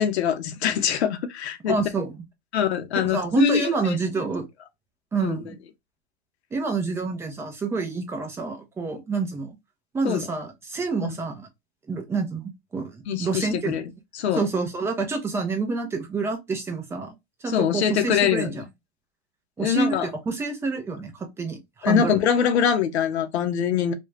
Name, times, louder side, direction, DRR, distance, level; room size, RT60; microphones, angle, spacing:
voice 1, 0.0-1.8 2.5-4.0 5.2-5.4 10.0-10.3 11.0-11.2 13.1-13.8 14.1-14.5 17.5-18.6 19.6-20.1 21.8-23.9, left 8 dB, 75° left, 0.6 m, -23 dB
voice 2, 1.7-2.2 3.0-4.5 5.1-5.6 6.5-9.6 9.9-11.5 11.9-13.8 14.4-17.1 17.4-18.6 19.6-22.2, right 4 dB, 10° right, 0.4 m, -28 dB
2.4 x 2.2 x 3.1 m
hypercardioid pair, 125°, 33 cm